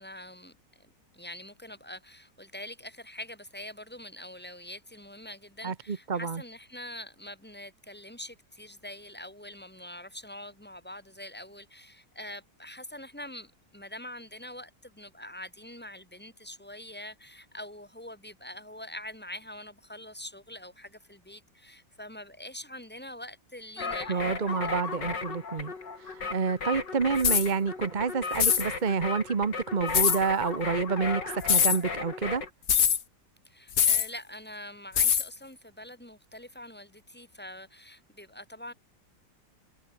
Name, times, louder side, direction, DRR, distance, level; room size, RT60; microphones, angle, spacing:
voice 1, 0.0-24.7 33.4-38.7, left 1 dB, 5° left, 4.5 m, -44 dB
voice 2, 5.6-6.4 24.1-25.7 26.1-32.4, right 5 dB, 30° right, 1.0 m, -28 dB
sound 1, 23.8-32.5, left 4 dB, 75° left, 3.8 m, -36 dB
sound 2, 27.2-27.5 28.3-28.7 29.9-30.2 31.4-31.8 32.7-33.0 33.8-34.1 35.0-35.3, left 8 dB, 50° left, 1.6 m, -22 dB
omnidirectional pair, 1.9 m